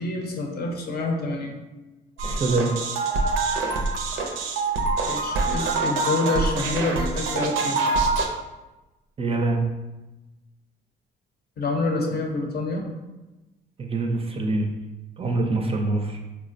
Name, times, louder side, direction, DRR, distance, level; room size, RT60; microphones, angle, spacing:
voice 1, 0.0-1.5 5.1-7.8 11.6-12.8, left 3 dB, 55° left, 1 dB, 0.7 m, -27 dB
voice 2, 2.2-2.7 9.2-9.6 13.8-14.7 15.2-16.2, right 2 dB, 30° right, 3 dB, 0.4 m, -24 dB
sound 1, 2.2-8.3, right 3 dB, 85° right, 0.5 m, -25 dB
4.4 x 2.1 x 2.5 m, 1.1 s
cardioid pair, 90°, 20 cm